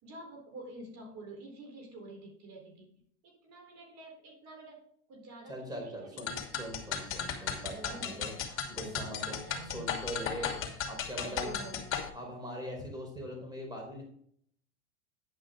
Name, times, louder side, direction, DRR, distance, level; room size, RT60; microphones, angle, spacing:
voice 1, 0.0-2.9 3.2-6.4 7.7-9.9 11.2-12.1, right 2 dB, 45° right, 1 dB, 4.1 m, -48 dB
voice 2, 5.5-8.3 8.7-9.4 9.7-10.6 10.9-11.7 12.1-14.0, equal, 10° right, 1 dB, 4.5 m, -41 dB
sound 1, 6.2-12.1, left 7 dB, 35° left, 2.8 m, -36 dB
10.5 x 9.2 x 3.8 m, 0.64 s
supercardioid pair, 120°, 36 cm